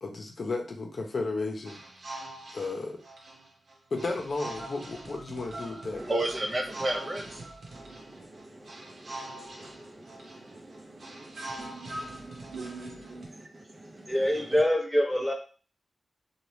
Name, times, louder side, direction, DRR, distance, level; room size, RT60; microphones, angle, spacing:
voice 1, 0.0-1.8 2.5-3.0 3.9-6.0, left 3 dB, 60° left, 2 dB, 0.7 m, -33 dB
sound 1, 1.7-13.3, right 2 dB, 75° right, 0.9 m, -43 dB
voice 2, 5.9-7.5 7.7-14.6, right 1 dB, 35° right, 2 dB, 0.7 m, -37 dB
voice 3, 14.1-15.3, left 1 dB, 5° left, 0 dB, 1.0 m, -25 dB
2.9 x 2.3 x 3.2 m, 0.38 s
cardioid pair, 65°, 0 cm